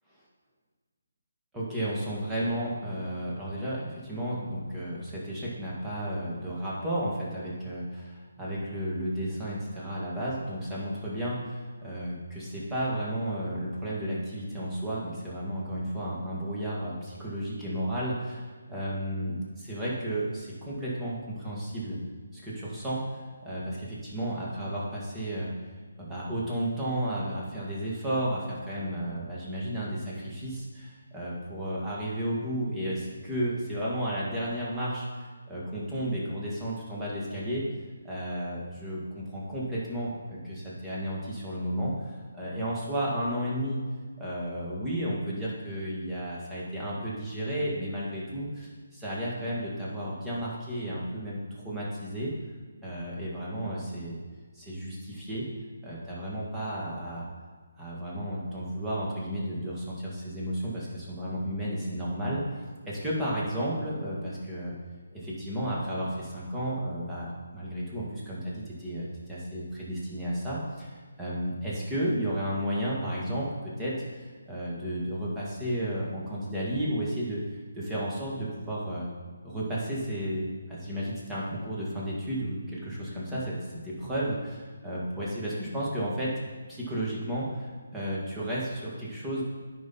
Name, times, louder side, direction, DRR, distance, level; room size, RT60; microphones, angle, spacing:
voice 1, 1.5-22.0 22.3-25.5 26.0-37.6 38.0-43.8 44.2-52.3 52.8-54.2 54.5-55.5 55.8-57.3 57.8-64.7 65.1-77.4 77.7-79.1 79.4-86.4 86.7-89.4, right 1 dB, 10° right, -7 dB, 2.0 m, -33 dB
9.2 x 5.5 x 4.2 m, 1.5 s
figure-of-eight pair, 150°, 0 cm